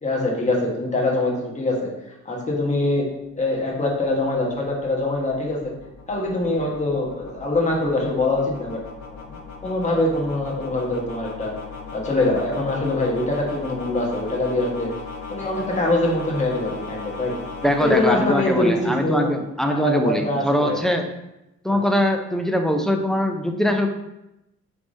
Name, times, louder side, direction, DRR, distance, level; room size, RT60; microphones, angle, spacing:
voice 1, 0.0-1.9 2.2-3.0 3.4-5.7 6.1-8.8 9.1-9.4 9.6-11.5 11.9-14.9 15.3-17.3 17.8-18.7 19.0-19.3 19.7-20.8 21.7-21.8, left 2 dB, 25° left, -2 dB, 1.2 m, -23 dB
sound 1, 3.3-19.4, left 4 dB, 65° left, 0.8 m, -38 dB
voice 2, 17.6-21.1 21.6-23.9, equal, ahead, 4 dB, 0.4 m, -22 dB
3.5 x 3.4 x 3.9 m, 0.91 s
cardioid pair, 90°, 30 cm